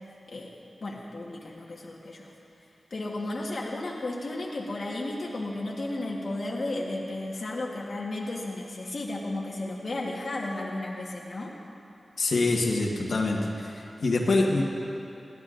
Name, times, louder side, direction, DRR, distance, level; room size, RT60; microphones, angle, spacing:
voice 1, 0.8-2.3 2.9-11.5, left 2 dB, 55° left, -3 dB, 1.3 m, -33 dB
voice 2, 12.2-14.6, left 2 dB, 75° left, -2 dB, 1.4 m, -25 dB
21.0 x 15.0 x 2.5 m, 2.7 s
wide cardioid pair, 135°, 0 cm